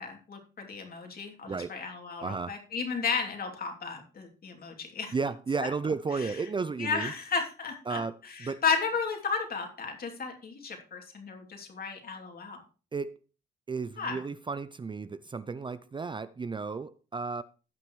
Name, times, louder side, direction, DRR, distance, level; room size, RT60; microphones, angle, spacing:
voice 1, 0.0-5.1 5.6-5.7 6.2-6.3 6.8-12.6 14.0-14.2, left 5 dB, 50° left, 2.9 m, -34 dB
voice 2, 2.2-2.5 5.1-7.1 7.9-8.6 12.9-13.2 13.7-17.4, right 4 dB, 25° right, 0.5 m, -33 dB
17.0 x 5.9 x 3.2 m
cardioid pair, 90°, 20 cm